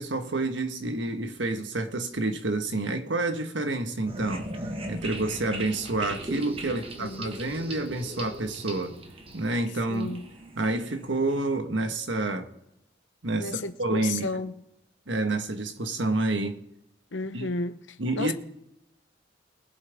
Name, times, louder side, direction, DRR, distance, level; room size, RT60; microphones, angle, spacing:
voice 1, 0.0-4.5 4.9-9.0 9.3-10.1 10.6-12.5 13.2-14.3 15.1-16.6 17.3-17.5 18.0-18.3, right 2 dB, 80° right, 1.4 m, -28 dB
sound 1, 4.1-11.6, right 1 dB, 30° right, 1.2 m, -39 dB
voice 2, 6.6-7.3 9.9-10.3 13.4-14.5 17.1-18.3, left 3 dB, 90° left, 0.9 m, -33 dB
22.0 x 7.6 x 3.5 m
head